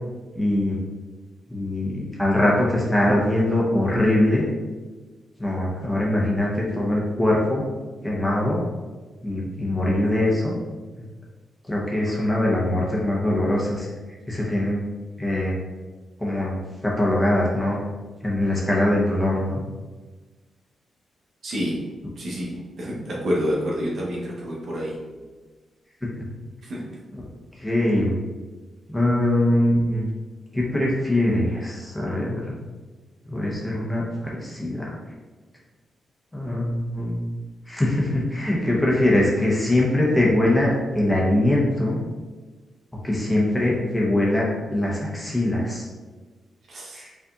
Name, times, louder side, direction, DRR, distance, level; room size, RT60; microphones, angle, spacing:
voice 1, 0.3-0.8 1.5-4.4 5.4-7.6 8.0-8.6 9.2-10.5 11.7-13.9 14.3-14.8 15.2-15.5 16.2-17.8 18.2-19.6 27.2-27.3 27.6-28.1 28.9-30.1 30.5-32.6 33.3-34.9 36.3-37.2 37.7-42.0 43.0-45.8 46.9-47.1, left 1 dB, 15° left, -4 dB, 1.3 m, -22 dB
voice 2, 21.4-21.8 22.2-25.0 26.6-26.9 46.7-47.0, equal, 65° right, -5 dB, 1.4 m, -28 dB
5.4 x 3.4 x 2.7 m, 1.3 s
cardioid pair, 75°, 0 cm